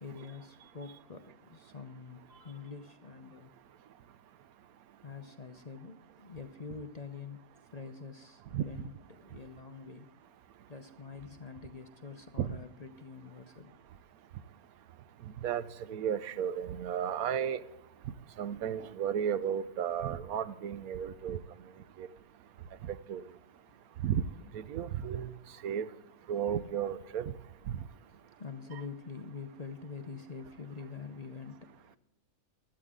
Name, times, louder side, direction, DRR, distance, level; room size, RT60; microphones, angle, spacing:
voice 1, 0.0-3.5 5.0-7.4 7.7-10.1 10.7-13.7 28.0-32.0, left 5 dB, 35° left, 7 dB, 0.7 m, -46 dB
voice 2, 15.9-17.6 18.4-21.4 22.0-22.1 22.9-23.2 24.0-24.2 24.5-25.3 25.6-25.9 26.3-27.3 27.7-27.8, right 9 dB, 80° right, 15 dB, 1.1 m, -33 dB
16.5 x 12.5 x 3.7 m, 0.95 s
omnidirectional pair, 1.5 m